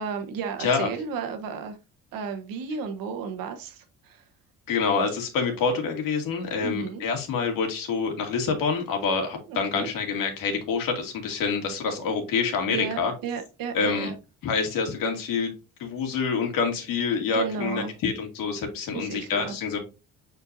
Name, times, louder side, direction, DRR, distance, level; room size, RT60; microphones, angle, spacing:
voice 1, 0.0-1.8 2.1-4.2 6.5-7.0 9.5-9.9 12.7-14.1 17.3-17.9 18.9-19.5, right 6 dB, 85° right, 7 dB, 1.3 m, -33 dB
voice 2, 4.7-13.1 13.7-14.1 14.4-15.5 15.8-19.8, left 5 dB, 75° left, 3 dB, 2.3 m, -27 dB
7.8 x 4.4 x 2.7 m, 0.29 s
cardioid pair, 175°, 34 cm